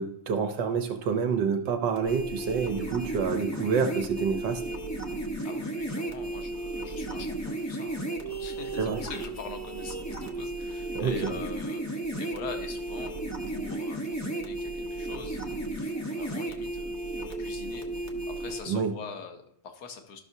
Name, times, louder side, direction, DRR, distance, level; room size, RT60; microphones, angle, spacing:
voice 1, 0.0-4.6 8.8-9.0 10.9-11.3 18.7-18.9, right 6 dB, 65° right, 5 dB, 1.3 m, -28 dB
sound 1, 2.0-18.6, right 2 dB, 25° left, 0.4 m, -34 dB
voice 2, 5.4-13.1 13.5-20.2, left 5 dB, 55° left, 5 dB, 1.3 m, -43 dB
13.0 x 6.1 x 2.7 m, 0.69 s
omnidirectional pair, 2.3 m